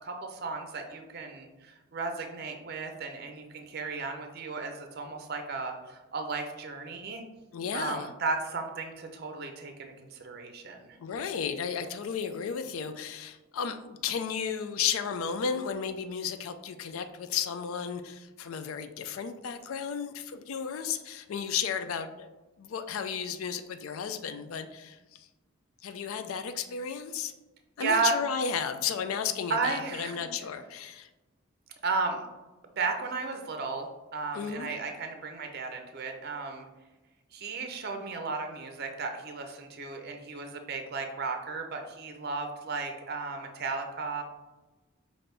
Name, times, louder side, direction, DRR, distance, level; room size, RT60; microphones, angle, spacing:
voice 1, 0.0-7.2 7.7-11.0 27.8-28.2 29.5-30.1 31.8-32.2 32.8-33.9 34.1-36.7 37.3-44.2, right 4 dB, 50° right, 5 dB, 0.5 m, -34 dB
voice 2, 7.5-8.1 11.0-22.3 22.6-25.3 25.8-27.3 27.8-31.1 34.3-34.7, left 7 dB, 80° left, 9 dB, 0.4 m, -33 dB
5.8 x 2.6 x 3.3 m, 1.1 s
head